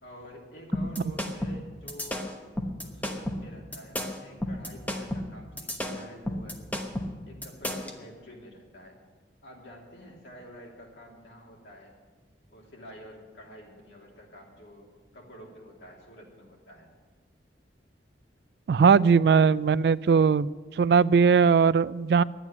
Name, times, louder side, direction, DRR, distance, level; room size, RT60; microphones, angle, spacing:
voice 1, 0.0-2.3 2.8-6.6 7.3-9.0 9.4-11.9 12.5-16.9, equal, 80° left, -2 dB, 3.1 m, -48 dB
sound 1, 0.7-8.0, left 1 dB, 10° left, 1.0 m, -32 dB
voice 2, 18.7-20.5 20.8-22.2, right 5 dB, 60° right, 19 dB, 0.3 m, -19 dB
11.0 x 9.2 x 9.4 m, 1.4 s
head